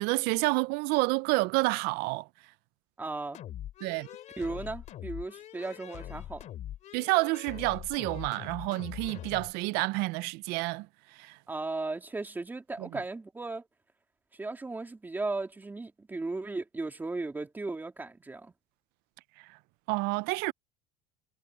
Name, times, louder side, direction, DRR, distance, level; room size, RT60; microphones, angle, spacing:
voice 1, 0.0-2.3 3.8-4.1 6.9-10.9 11.1-11.4 12.8-12.9 19.4-19.5 19.9-20.5, right 24 dB, 55° right, 0.4 m, -29 dB
voice 2, 3.0-3.4 4.4-6.5 11.5-13.7 14.3-18.5, right 3 dB, 10° right, 2.6 m, -36 dB
sound 1, 3.3-9.5, left 12 dB, 35° left, 2.6 m, -43 dB
cardioid pair, 160°, 20 cm